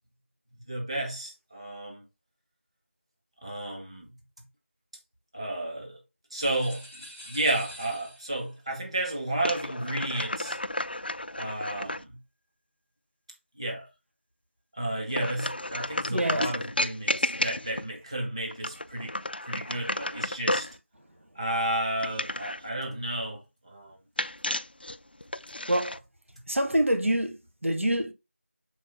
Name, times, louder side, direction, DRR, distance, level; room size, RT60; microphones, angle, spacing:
voice 1, 0.7-2.0 3.4-4.1 5.3-6.0 6.3-10.6 11.4-12.2 13.6-13.9 14.7-19.1 19.4-20.7 21.3-24.0, right 1 dB, 25° right, 1.5 m, -32 dB
sound 1, 6.4-8.5, equal, 10° right, 0.9 m, -46 dB
sound 2, 9.4-12.0 15.1-17.9 18.5-20.8 22.0-22.7 24.2-26.0, left 1 dB, 45° left, 0.4 m, -32 dB
voice 2, 16.0-16.5 25.7-26.0 26.5-28.1, right 1 dB, 75° right, 1.3 m, -26 dB
7.0 x 4.3 x 3.6 m
figure-of-eight pair, 180°, 7 cm